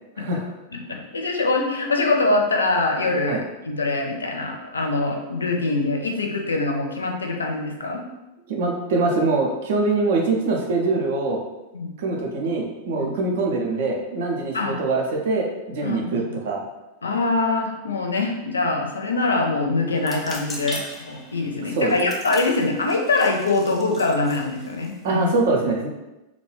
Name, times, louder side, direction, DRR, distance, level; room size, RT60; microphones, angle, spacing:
voice 1, 0.2-0.5 3.3-3.4 8.5-11.4 12.0-16.7 21.8-21.9 25.0-25.9, right 3 dB, 55° right, 0 dB, 0.5 m, -23 dB
voice 2, 0.7-8.0 11.7-11.9 13.0-13.1 14.5-14.8 15.8-16.4 17.0-25.3, left 3 dB, 75° left, 2 dB, 0.4 m, -24 dB
sound 1, 20.0-25.3, left 1 dB, 10° left, 0.5 m, -39 dB
2.4 x 2.2 x 3.2 m, 1.0 s
figure-of-eight pair, 90°, 0 cm